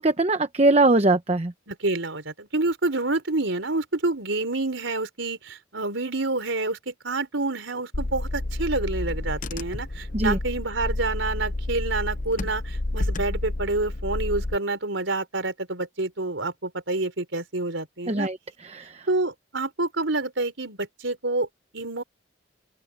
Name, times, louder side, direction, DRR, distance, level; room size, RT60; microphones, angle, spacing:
voice 1, 0.0-1.5 10.1-10.4 18.1-18.4 18.6-19.1, right 2 dB, 35° right, 0.9 m, -21 dB
voice 2, 1.7-18.3 19.1-21.5 21.7-22.0, right 2 dB, 90° right, 4.2 m, -28 dB
Car / Engine, 7.9-14.6, left 2 dB, 45° left, 0.8 m, -30 dB
open air
head